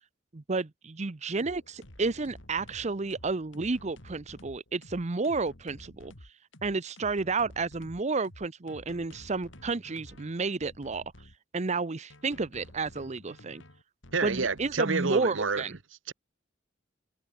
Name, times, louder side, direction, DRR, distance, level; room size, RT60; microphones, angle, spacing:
voice 1, 0.3-6.1 6.6-11.0 11.5-13.6 14.2-15.8, right 3 dB, 35° right, 0.7 m, -31 dB
sound 1, 1.3-11.4 12.1-14.8, left 1 dB, 75° left, 5.3 m, -52 dB
voice 2, 14.1-15.6 16.1-16.2, right 4 dB, 80° right, 1.3 m, -28 dB
head